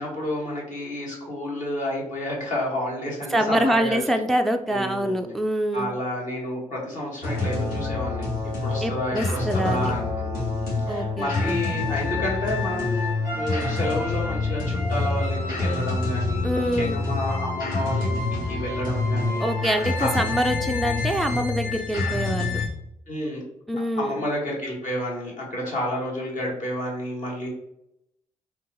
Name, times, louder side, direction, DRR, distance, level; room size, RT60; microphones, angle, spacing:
voice 1, 0.0-4.0 4.7-5.3 5.7-19.4 20.0-20.1 23.1-23.4 24.0-27.5, left 1 dB, 55° left, -3 dB, 1.4 m, -30 dB
voice 2, 3.3-5.9 8.8-9.9 10.9-11.6 16.4-17.0 19.4-22.6 23.7-24.2, right 1 dB, ahead, 5 dB, 0.3 m, -25 dB
sound 1, 7.2-22.7, left 3 dB, 75° left, 1.3 m, -27 dB
3.7 x 2.2 x 2.8 m, 0.78 s
supercardioid pair, 50°, 15 cm